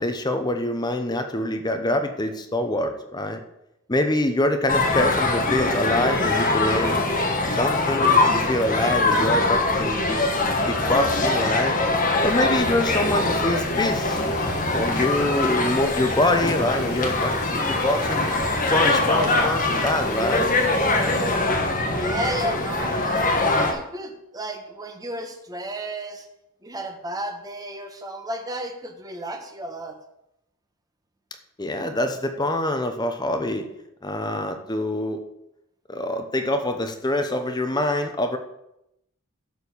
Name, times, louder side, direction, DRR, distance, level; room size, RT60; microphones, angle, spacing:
voice 1, 0.0-3.4 3.9-7.0 7.5-10.4 10.7-11.8 12.2-14.2 14.7-18.3 18.7-20.5 31.6-33.7 34.0-35.2 35.9-38.4, left 1 dB, 20° left, 6 dB, 0.8 m, -25 dB
sound 1, 4.7-23.7, left 2 dB, 40° left, 1.5 m, -23 dB
sound 2, 12.2-21.4, left 2 dB, 90° left, 3.4 m, -42 dB
voice 2, 21.9-26.3 26.6-30.0, right 1 dB, 15° right, 4 dB, 1.2 m, -33 dB
11.5 x 4.5 x 6.9 m, 0.82 s
head